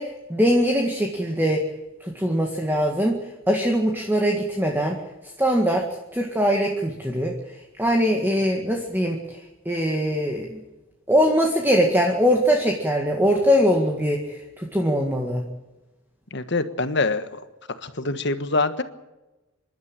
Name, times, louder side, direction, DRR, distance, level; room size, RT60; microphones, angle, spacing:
voice 1, 0.0-1.6 2.1-3.2 3.5-5.0 5.4-5.8 6.1-7.4 7.8-10.6 11.1-15.4, equal, 10° right, 1 dB, 1.8 m, -22 dB
voice 2, 16.3-17.2 17.8-18.8, left 3 dB, 55° left, 10 dB, 1.4 m, -24 dB
26.5 x 12.0 x 9.0 m, 1.1 s
head